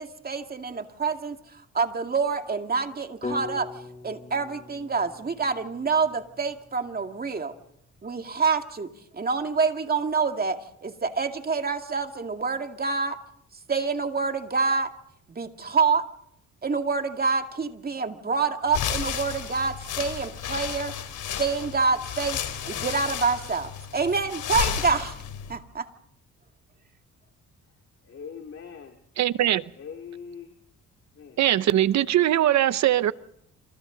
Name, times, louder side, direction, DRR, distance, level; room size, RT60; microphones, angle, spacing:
voice 1, 0.0-1.4 1.7-3.7 4.0-7.5 8.0-8.9 9.1-13.2 13.7-14.9 15.3-16.0 16.6-20.9 21.4-22.4 22.7-25.1 25.5-25.9, right 4 dB, 30° right, 2.3 m, -27 dB
sound 1, 3.2-7.3, left 4 dB, 25° left, 7.2 m, -40 dB
sound 2, 18.7-25.6, left 9 dB, 75° left, 3.7 m, -32 dB
voice 2, 28.0-29.0 29.7-30.6 31.1-31.5, left 6 dB, 50° left, 2.7 m, -42 dB
voice 3, 29.2-29.6 31.4-33.1, right 12 dB, 65° right, 0.8 m, -21 dB
27.5 x 27.5 x 4.0 m
cardioid pair, 90°, 30 cm